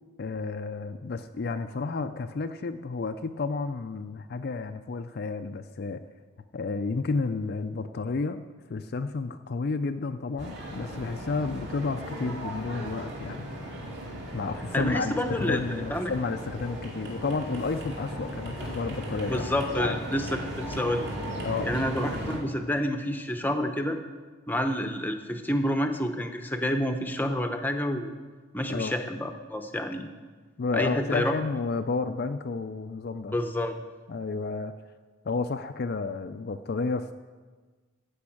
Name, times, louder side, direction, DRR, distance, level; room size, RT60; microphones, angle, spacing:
voice 1, 0.2-6.0 6.5-8.4 8.7-13.5 14.3-20.0 21.4-21.7 28.7-28.9 30.6-33.4 34.1-34.7 35.2-37.1, left 4 dB, 45° left, 8 dB, 0.4 m, -31 dB
sound 1, 10.4-22.4, equal, 55° right, 2.8 m, -37 dB
voice 2, 14.7-16.1 19.3-21.1 21.6-24.0 24.5-28.1 28.5-30.1 30.7-31.3 33.3-33.8, left 1 dB, 10° left, 6 dB, 0.7 m, -28 dB
15.0 x 5.4 x 8.5 m, 1.4 s
head